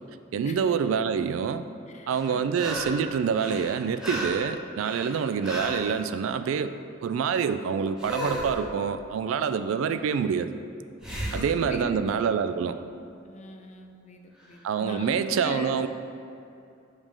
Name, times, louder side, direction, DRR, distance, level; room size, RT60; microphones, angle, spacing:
voice 1, 0.3-1.6 2.1-6.7 7.0-10.5 11.3-12.8 14.6-15.9, right 6 dB, 85° right, 11 dB, 0.3 m, -26 dB
voice 2, 1.9-2.7 11.2-12.0 13.2-15.9, left 2 dB, 35° left, 4 dB, 0.5 m, -40 dB
sound 1, 2.1-3.1 3.3-5.9 8.0-8.6 11.0-11.5 14.4-14.5, equal, 5° right, 0.9 m, -34 dB
6.4 x 5.1 x 3.6 m, 2.6 s
head